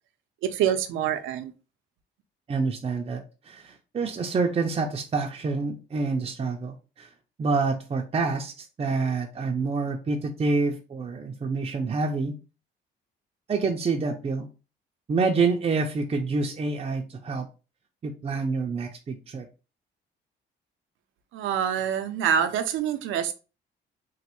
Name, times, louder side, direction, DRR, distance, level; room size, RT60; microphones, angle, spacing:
voice 1, 0.4-1.5 21.3-23.3, right 9 dB, 85° right, 0.5 m, -26 dB
voice 2, 2.5-7.1 7.4-12.3 13.5-14.5 15.1-17.5 18.0-19.5, right 4 dB, 30° right, 0.4 m, -27 dB
3.1 x 2.1 x 2.9 m
cardioid pair, 90°, 20 cm